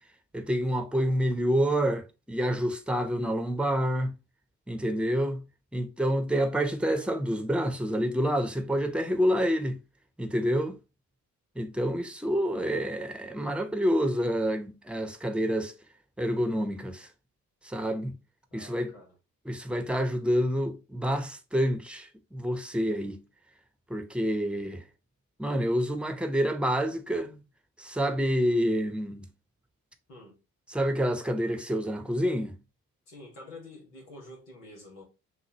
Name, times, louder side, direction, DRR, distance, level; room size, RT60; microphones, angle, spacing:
voice 1, 0.3-4.1 4.7-5.4 5.7-9.8 10.2-10.8 11.6-15.7 16.2-17.1 17.6-18.1 18.5-18.9 19.5-23.2 23.9-24.8 25.4-27.4 27.8-29.2 30.7-32.6, equal, ahead, 0.9 m, -28 dB
voice 2, 18.5-19.1 30.1-30.4 33.1-35.0, left 2 dB, 85° left, 1.6 m, -48 dB
6.4 x 2.6 x 3.0 m
figure-of-eight pair, 40°, 45 cm